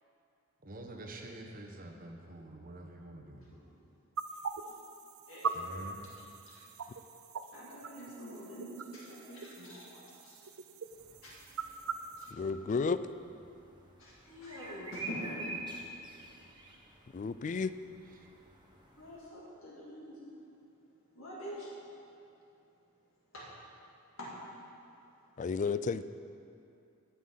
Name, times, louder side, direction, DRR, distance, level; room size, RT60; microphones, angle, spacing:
voice 1, 0.6-3.5 5.5-6.1 18.2-18.3, right 1 dB, 40° right, 1 dB, 1.2 m, -47 dB
sound 1, 4.2-12.3, right 5 dB, 75° right, 0.5 m, -42 dB
voice 2, 5.3-5.7 6.0-6.6 7.5-10.5 11.2-11.4 12.2-12.5 14.0-15.6 19.0-20.2 21.1-21.7 23.3-23.5 24.2-24.3, equal, 65° left, -6 dB, 2.3 m, -46 dB
sound 2, 10.9-19.3, right 2 dB, 20° right, 1.2 m, -48 dB
voice 3, 12.3-13.0 17.1-17.7 25.4-26.0, left 4 dB, 35° left, 14 dB, 0.3 m, -32 dB
17.0 x 6.2 x 5.6 m, 2.7 s
head